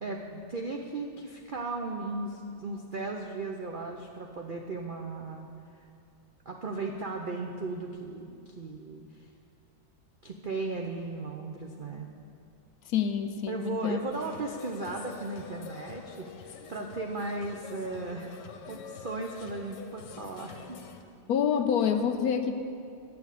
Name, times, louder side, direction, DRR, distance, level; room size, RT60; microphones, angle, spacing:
voice 1, 0.0-5.5 6.5-9.3 10.2-12.1 13.5-18.4 18.7-20.8, right 3 dB, 60° right, 1 dB, 0.5 m, -36 dB
voice 2, 12.9-14.0 21.3-22.5, left 7 dB, 70° left, 7 dB, 1.0 m, -27 dB
sound 1, 14.1-21.0, left 7 dB, 85° left, 1.4 m, -46 dB
9.4 x 6.8 x 8.2 m, 2.5 s
omnidirectional pair, 1.8 m